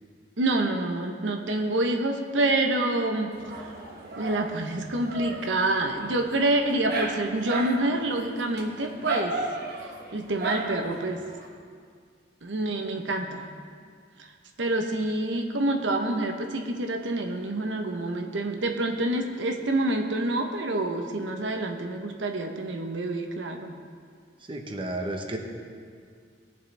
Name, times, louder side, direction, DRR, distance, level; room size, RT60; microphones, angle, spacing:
voice 1, 0.4-3.4 4.2-9.4 10.1-11.3 12.4-13.5 14.2-14.3 14.6-23.7, right 2 dB, 90° right, 4 dB, 0.9 m, -27 dB
Dog, 3.3-11.5, right 2 dB, 60° right, 1.3 m, -35 dB
voice 2, 24.5-25.4, right 1 dB, 30° right, 2 dB, 1.0 m, -32 dB
19.0 x 7.3 x 3.4 m, 2.1 s
head